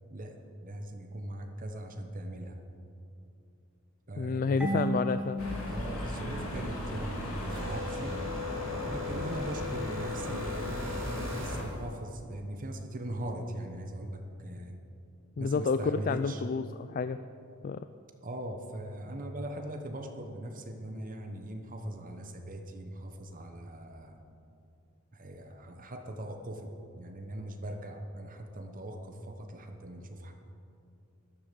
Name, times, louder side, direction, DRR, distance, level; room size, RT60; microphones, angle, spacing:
voice 1, 0.6-2.6 4.1-4.9 5.7-8.2 8.8-14.8 15.4-16.4 18.2-24.2 25.1-30.3, right 1 dB, 40° right, 5 dB, 1.0 m, -40 dB
voice 2, 4.2-5.4 15.4-17.2 17.6-17.8, left 4 dB, 40° left, 11 dB, 0.3 m, -30 dB
Marimba xylophone / Wood, 4.6-7.3, right 1 dB, 5° right, 1.4 m, -36 dB
sound 1, 5.4-11.6, equal, 70° left, 3.2 m, -36 dB
sound 2, 7.4-11.9, left 5 dB, 60° right, 3.9 m, -40 dB
12.5 x 11.5 x 6.9 m, 2.7 s
head